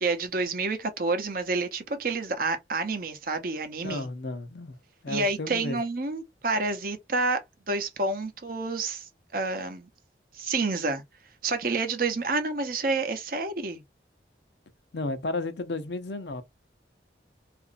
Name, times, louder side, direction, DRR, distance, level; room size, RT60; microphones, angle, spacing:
voice 1, 0.0-4.1 5.1-7.4 7.7-9.9 10.3-11.0 11.4-13.8, right 3 dB, 55° right, 0.6 m, -29 dB
voice 2, 3.8-4.8 5.0-5.8 14.9-16.4, left 2 dB, 75° left, 0.6 m, -33 dB
2.9 x 2.5 x 2.5 m
head